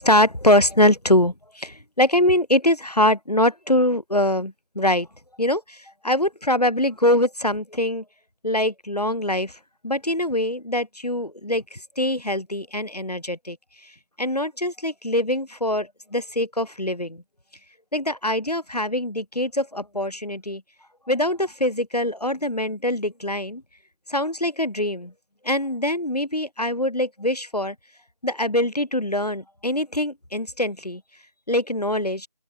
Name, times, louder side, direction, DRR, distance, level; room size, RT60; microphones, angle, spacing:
voice 1, 0.0-5.1 5.4-5.8 6.0-8.0 8.4-9.5 9.8-13.6 14.2-17.2 17.9-20.6 21.1-23.6 24.1-25.1 25.4-27.7 28.2-31.0 31.5-32.3, left 1 dB, 80° left, 2.6 m, -23 dB
open air
figure-of-eight pair, 175°, 20 cm